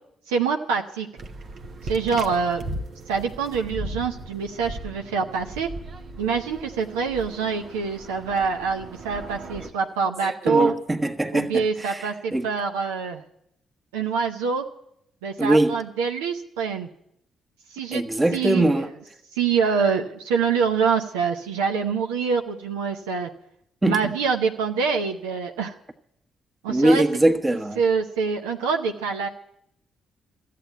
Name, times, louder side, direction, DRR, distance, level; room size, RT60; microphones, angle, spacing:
voice 1, 0.3-1.1 1.9-2.6 3.1-5.7 6.2-10.7 11.3-13.2 13.9-14.7 15.2-16.9 17.7-18.0 18.3-18.9 19.4-23.3 23.8-25.7 26.6-27.0 27.8-29.3, right 5 dB, 85° right, 0.7 m, -25 dB
sound 1, 1.2-9.7, right 1 dB, 55° right, 1.1 m, -38 dB
voice 2, 10.2-12.5 15.4-15.8 17.9-18.9 23.8-24.0 26.7-27.8, right 1 dB, 25° right, 1.4 m, -22 dB
14.0 x 8.5 x 9.3 m
hypercardioid pair, 45°, 0 cm